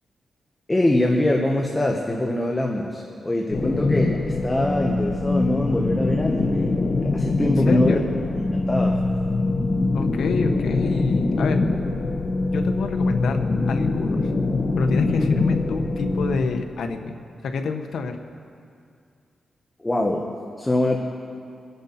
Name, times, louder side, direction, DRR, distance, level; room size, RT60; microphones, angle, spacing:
voice 1, 0.7-6.7 7.0-8.0 8.3-9.0 19.8-20.3 20.6-21.0, left 1 dB, 15° left, 0 dB, 1.5 m, -23 dB
sound 1, 3.5-16.4, left 3 dB, 45° left, 1.2 m, -23 dB
voice 2, 7.4-8.1 9.9-11.6 12.4-14.3 14.8-17.1 17.4-18.2, left 4 dB, 90° left, 6 dB, 1.2 m, -27 dB
27.5 x 11.0 x 4.3 m, 2.3 s
cardioid pair, 85°, 0 cm